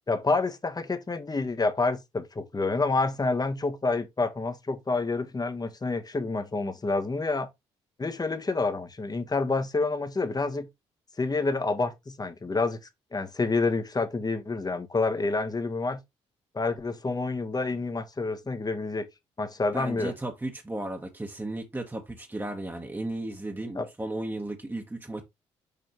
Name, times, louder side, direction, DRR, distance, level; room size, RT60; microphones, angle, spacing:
voice 1, 0.1-7.5 8.0-10.7 11.2-12.8 13.1-16.0 16.5-19.1 19.4-20.1 23.7-23.9, left 3 dB, 25° left, 1.5 m, -28 dB
voice 2, 19.7-25.2, right 2 dB, 15° right, 1.6 m, -35 dB
7.0 x 5.1 x 3.1 m
hypercardioid pair, 45°, 15 cm